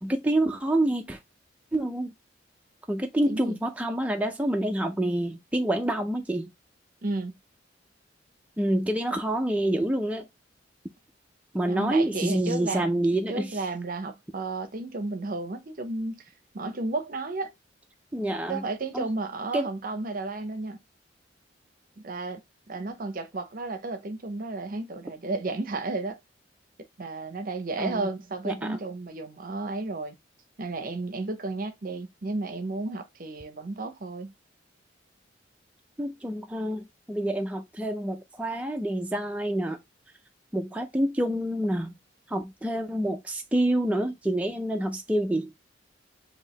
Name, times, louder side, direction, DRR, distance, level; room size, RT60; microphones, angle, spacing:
voice 1, 0.0-1.2 1.7-2.1 2.9-6.5 8.6-10.3 11.5-13.6 18.1-18.6 18.9-19.0 19.5-19.7 27.8-28.1 28.4-28.8 36.0-39.8 40.5-41.9 42.3-45.5, right 1 dB, 5° right, 0.4 m, -27 dB
voice 2, 3.3-3.6 7.0-7.4 11.7-16.2 16.5-17.5 18.5-20.8 22.0-22.4 22.7-26.2 27.0-30.2 30.6-34.3, right 3 dB, 45° right, 0.7 m, -33 dB
4.6 x 2.7 x 3.1 m
head